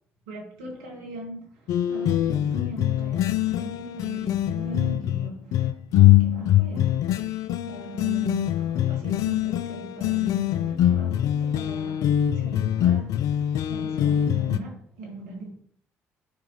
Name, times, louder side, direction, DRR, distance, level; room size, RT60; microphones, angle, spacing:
voice 1, 0.3-15.5, right 3 dB, 80° right, 1.7 m, -40 dB
sound 1, 1.7-14.6, left 12 dB, 65° left, 0.4 m, -23 dB
8.3 x 5.0 x 3.0 m
hypercardioid pair, 50°, 6 cm